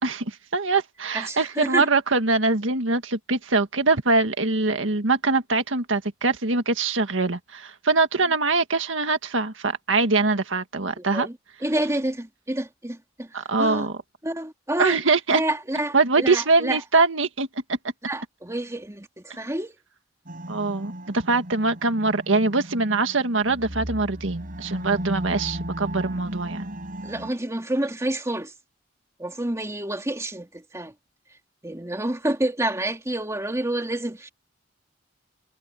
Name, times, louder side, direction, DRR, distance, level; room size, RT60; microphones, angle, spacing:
voice 1, 0.0-11.3 13.3-13.9 14.8-15.4 15.9-17.5 20.5-26.6, right 3 dB, 80° right, 1.8 m, -23 dB
voice 2, 1.1-1.9 11.0-13.9 14.2-15.0 15.3-16.8 18.0-19.8 27.0-28.5 29.2-30.9 31.3-31.4 31.6-34.3, right 1 dB, 15° right, 2.4 m, -28 dB
sound 1, 20.3-27.3, right 1 dB, 45° right, 6.0 m, -35 dB
head